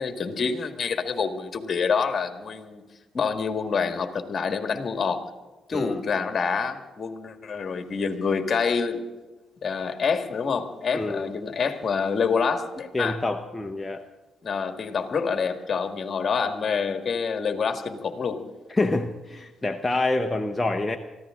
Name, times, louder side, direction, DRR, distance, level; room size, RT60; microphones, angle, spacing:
voice 1, 0.0-2.8 3.1-5.2 5.7-9.0 9.6-13.2 14.4-18.4, left 5 dB, 45° left, 7 dB, 1.8 m, -27 dB
voice 2, 5.7-6.0 10.9-11.3 12.9-14.1 18.7-21.0, left 2 dB, 15° left, 5 dB, 0.8 m, -27 dB
24.0 x 15.0 x 3.7 m, 1.2 s
cardioid pair, 90°, 0 cm